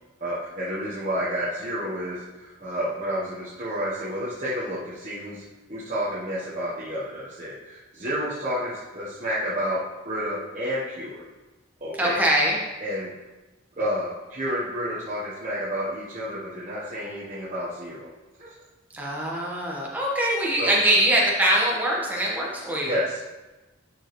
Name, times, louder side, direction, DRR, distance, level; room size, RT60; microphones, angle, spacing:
voice 1, 0.2-5.4 5.7-11.2 11.8-12.2 12.8-13.1 13.8-18.1 18.4-18.5 20.6-20.8 22.8-23.2, equal, 35° right, -8 dB, 1.1 m, -30 dB
voice 2, 12.0-12.6 18.9-22.9, right 1 dB, 10° right, -4 dB, 1.3 m, -23 dB
11.0 x 5.0 x 3.1 m, 1.1 s
head